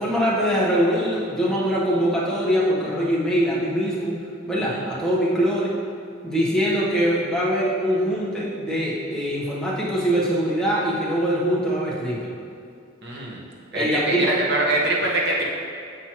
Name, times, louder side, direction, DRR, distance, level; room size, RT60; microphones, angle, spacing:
voice 1, 0.0-4.2 4.5-5.7 6.2-12.3 13.7-14.3, equal, 5° left, -7 dB, 1.0 m, -23 dB
voice 2, 4.6-4.9 13.0-13.4 13.7-15.4, right 2 dB, 55° right, -3 dB, 1.0 m, -24 dB
7.1 x 6.1 x 3.0 m, 2.3 s
head